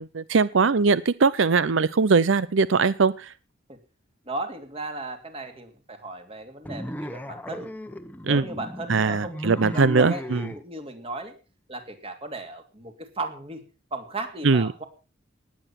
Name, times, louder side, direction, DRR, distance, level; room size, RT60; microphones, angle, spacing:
voice 1, 0.0-3.3 8.2-8.4 8.9-10.4 14.4-14.7, right 4 dB, 85° right, 17 dB, 0.6 m, -21 dB
voice 2, 4.2-7.7 8.2-11.3 11.7-13.6 13.9-14.8, right 2 dB, 30° right, 6 dB, 2.8 m, -36 dB
sound 1, 6.7-10.6, equal, 10° left, 1.0 m, -36 dB
19.0 x 8.9 x 5.9 m, 0.35 s
head